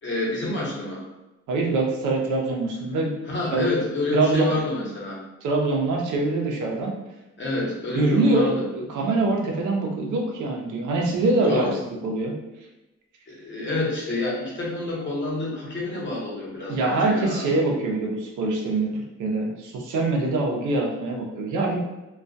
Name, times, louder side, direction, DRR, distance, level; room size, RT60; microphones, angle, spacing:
voice 1, 0.0-1.1 3.3-5.2 7.4-8.7 11.5-11.8 13.3-17.4, left 2 dB, 40° left, -4 dB, 1.0 m, -28 dB
voice 2, 1.5-3.2 3.5-3.6 4.1-4.5 5.4-6.9 7.9-11.7 12.0-12.3 16.7-21.8, right 2 dB, 80° right, 0 dB, 0.7 m, -24 dB
2.3 x 2.2 x 2.6 m, 1.0 s
cardioid pair, 90°, 30 cm